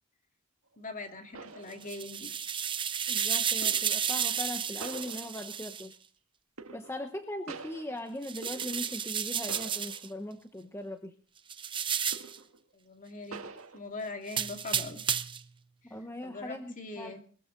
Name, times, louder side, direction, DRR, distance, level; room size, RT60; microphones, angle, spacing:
sound 1, 0.7-0.8 1.3-2.3 3.6-4.1 4.8-5.7 6.6-7.2 7.5-9.2 9.5-10.2 10.6-10.8 12.1-12.6 13.3-13.8, right 4 dB, 85° right, 1.8 m, -46 dB
voice 1, 0.8-2.3 12.7-13.4 13.7-15.0 16.2-17.2, left 3 dB, 40° left, 5 dB, 2.2 m, -41 dB
sound 2, 1.7-5.9 8.2-10.1 11.5-12.4 14.3-15.5, right 8 dB, 25° right, 0.6 m, -32 dB
voice 2, 3.1-6.0 6.7-11.1 15.9-17.1, left 1 dB, 10° left, 6 dB, 0.9 m, -40 dB
20.5 x 14.0 x 3.9 m, 0.42 s
head